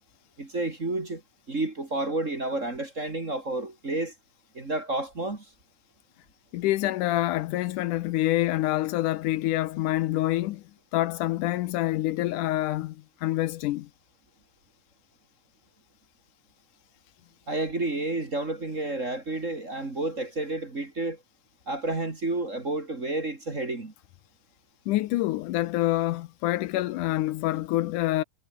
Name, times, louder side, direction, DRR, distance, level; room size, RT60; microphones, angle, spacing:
voice 1, 0.4-1.2 1.5-4.1 4.5-5.5 17.5-21.2 21.7-23.9, right 2 dB, 25° right, 2.4 m, -30 dB
voice 2, 6.5-10.6 10.9-13.9 24.9-28.2, left 16 dB, 75° left, 2.2 m, -26 dB
omnidirectional pair, 3.8 m